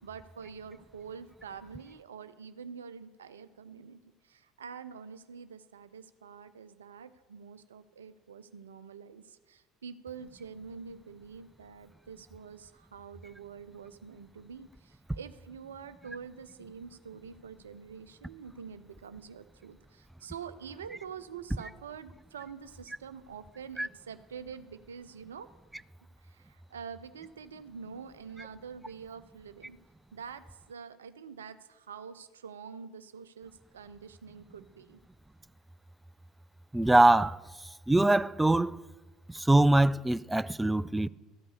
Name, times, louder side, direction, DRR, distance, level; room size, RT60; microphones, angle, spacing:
voice 1, 0.0-25.5 26.2-29.8 30.1-35.0, right 6 dB, 75° right, 0.5 m, -46 dB
voice 2, 36.7-37.4 37.9-38.8 39.3-41.1, right 2 dB, 10° right, 0.3 m, -23 dB
13.5 x 5.4 x 8.3 m
figure-of-eight pair, 60°, 0 cm